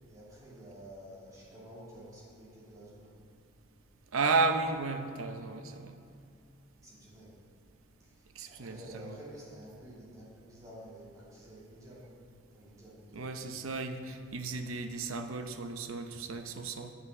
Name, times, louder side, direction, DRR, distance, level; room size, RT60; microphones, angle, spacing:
voice 1, 0.1-3.2 6.8-7.4 8.0-12.2 12.5-13.6, equal, 15° right, -7 dB, 2.6 m, -50 dB
voice 2, 4.1-5.9 8.3-9.2 13.1-16.9, right 4 dB, 75° right, 7 dB, 0.8 m, -33 dB
9.4 x 8.7 x 5.5 m, 2.4 s
head